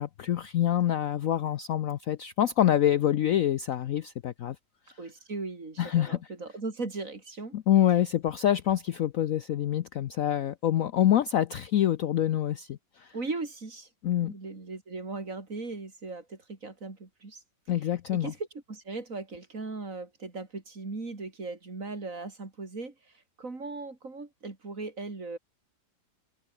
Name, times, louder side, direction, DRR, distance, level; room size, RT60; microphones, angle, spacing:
voice 1, 0.0-4.6 5.8-6.2 7.5-13.1 14.0-14.3 17.7-18.3, left 11 dB, 65° left, 0.9 m, -26 dB
voice 2, 5.0-7.6 13.1-13.9 14.2-17.4 18.1-18.4 18.7-22.9 23.4-25.4, right 3 dB, 45° right, 3.7 m, -38 dB
omnidirectional pair, 1.9 m